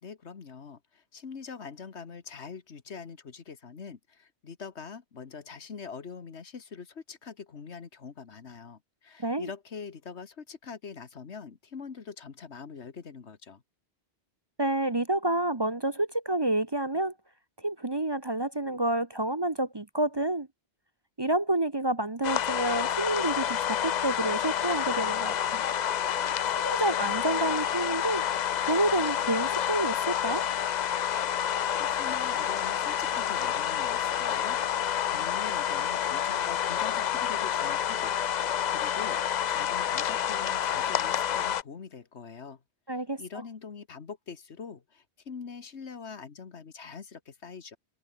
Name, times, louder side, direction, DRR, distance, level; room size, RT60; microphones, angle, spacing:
voice 1, 0.0-13.6 31.7-38.1 38.4-42.6 43.2-47.8, left 5 dB, 75° left, 1.8 m, -44 dB
voice 2, 14.6-17.1 17.6-20.5 21.2-25.6 26.5-28.2 28.7-30.5 42.9-43.2, right 1 dB, 25° right, 0.9 m, -29 dB
sound 1, 22.2-41.6, left 9 dB, 55° left, 0.5 m, -29 dB
omnidirectional pair, 1.1 m